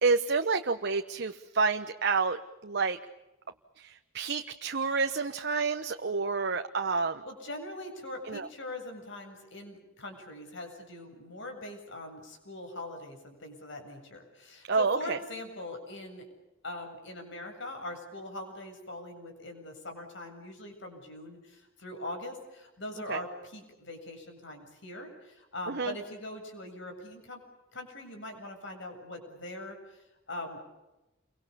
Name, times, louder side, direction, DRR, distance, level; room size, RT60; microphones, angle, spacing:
voice 1, 0.0-2.4 2.6-3.0 3.8-7.2 8.3-8.5 14.7-15.2 23.1-23.2 25.7-25.9, right 4 dB, 55° right, 7 dB, 1.1 m, -29 dB
voice 2, 7.2-16.3 16.6-27.4 27.7-30.6, left 1 dB, 65° left, 5 dB, 7.6 m, -42 dB
29.5 x 24.0 x 7.0 m, 0.99 s
head